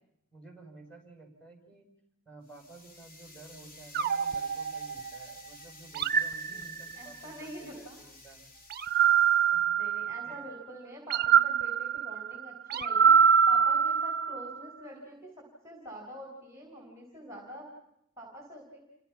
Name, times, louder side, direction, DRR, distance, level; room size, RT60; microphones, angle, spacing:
voice 1, 0.3-1.9 2.3-8.4 9.5-9.8 10.2-10.5, right 3 dB, 5° left, 2 dB, 7.7 m, -52 dB
sound 1, 2.4-9.6, left 2 dB, 40° left, 3.3 m, -53 dB
sound 2, 3.9-5.3 5.9-7.2 8.7-10.4 11.1-14.6, right 7 dB, 45° right, 0.9 m, -25 dB
voice 2, 6.9-8.0 9.8-13.1 13.5-17.7 18.2-18.8, equal, 15° right, 1 dB, 5.2 m, -46 dB
29.5 x 25.5 x 5.9 m, 0.79 s
head